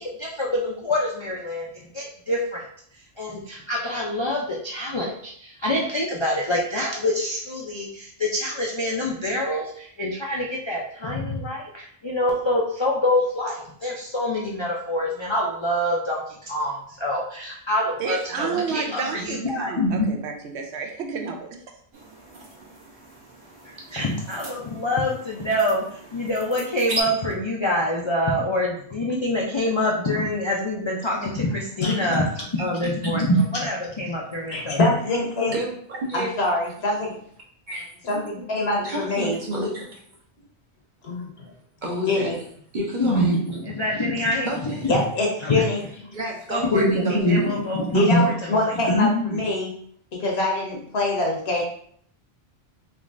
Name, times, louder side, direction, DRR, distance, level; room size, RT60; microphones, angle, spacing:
voice 1, 0.0-1.7 1.9-2.6 3.2-20.1 23.9-32.3 32.5-34.8 43.0-44.5 45.4-45.6 46.5-49.4, left 1 dB, 45° left, 0.4 m, -25 dB
voice 2, 18.0-21.5, right 5 dB, 85° right, 0.9 m, -30 dB
sound 1, 21.9-27.0, right 2 dB, 65° right, 1.2 m, -37 dB
voice 3, 34.5-35.5 36.1-37.2 38.0-39.4 41.0-41.5 42.1-42.4 44.9-45.8 47.9-49.7 50.2-51.6, left 2 dB, 70° left, 1.2 m, -24 dB
voice 4, 35.5-36.3 37.7-37.9 38.8-40.0 41.8-42.4 42.7-43.4 44.0-44.1 44.5-44.9 46.1-47.4, equal, 50° right, 0.9 m, -30 dB
3.7 x 3.1 x 2.5 m
omnidirectional pair, 1.1 m